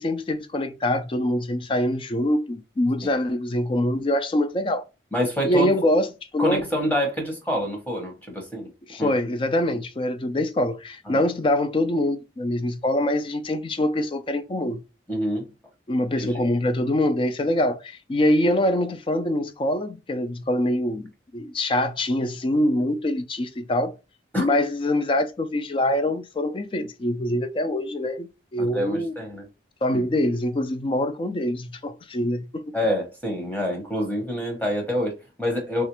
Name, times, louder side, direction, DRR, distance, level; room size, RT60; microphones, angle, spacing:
voice 1, 0.0-4.8 5.4-6.1 6.3-6.6 8.9-14.8 15.9-24.0 24.4-29.2 29.8-32.6, left 1 dB, 30° left, 0.3 m, -24 dB
voice 2, 5.1-5.7 6.4-8.7 9.0-9.1 11.1-11.2 15.1-15.5 16.2-16.3 24.3-24.5 28.6-29.5 29.9-30.1 32.7-35.8, equal, 10° left, 0.9 m, -27 dB
3.2 x 2.4 x 2.9 m
head